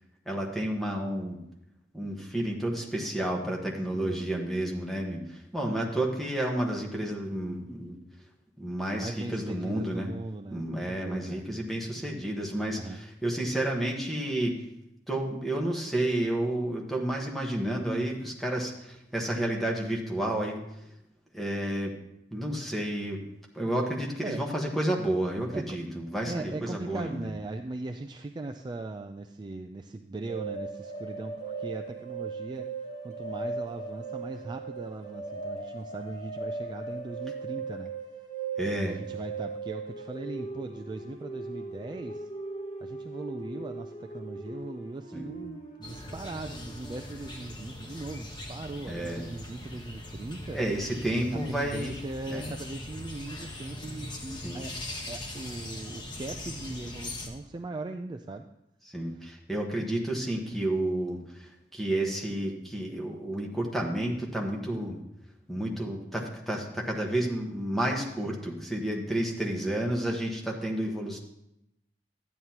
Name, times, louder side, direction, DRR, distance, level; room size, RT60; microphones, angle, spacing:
voice 1, 0.3-1.4 1.9-8.0 8.6-10.1 10.5-14.6 15.1-20.6 21.3-21.9 22.3-23.2 23.5-27.3 38.6-39.0 45.1-45.3 48.9-49.2 50.5-51.9 52.3-52.5 54.4-54.6 58.9-65.0 65.5-71.2, right 1 dB, ahead, -1 dB, 1.3 m, -31 dB
voice 2, 9.0-11.4 12.7-13.0 24.2-24.4 25.5-25.8 26.2-37.9 38.8-42.3 42.8-50.6 51.5-54.7 55.1-58.5 59.1-59.4 60.1-60.2 60.5-60.6 69.2-69.7, right 2 dB, 25° right, 5 dB, 0.3 m, -39 dB
sound 1, 30.3-47.7, right 4 dB, 45° left, 1.5 m, -39 dB
sound 2, 45.8-57.3, left 1 dB, 25° left, 1.1 m, -41 dB
12.5 x 9.3 x 2.9 m, 0.82 s
head